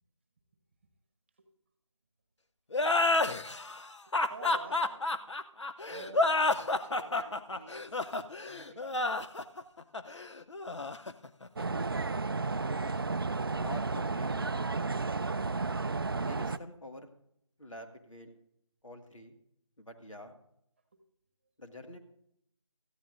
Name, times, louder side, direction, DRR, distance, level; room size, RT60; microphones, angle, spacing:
sound 1, 2.7-12.0, left 2 dB, 65° left, 0.8 m, -30 dB
voice 1, 4.1-5.0 5.8-9.1 20.9-21.0, right 3 dB, 20° right, 7 dB, 1.1 m, -50 dB
sound 2, 11.6-16.6, right 3 dB, 45° right, 0.4 m, -32 dB
voice 2, 13.5-14.5 16.2-17.1 17.6-18.4 18.8-19.3 19.8-20.3 21.6-22.0, left 1 dB, 85° left, 5 dB, 1.9 m, -46 dB
18.0 x 14.0 x 2.6 m, 0.76 s
figure-of-eight pair, 160°, 16 cm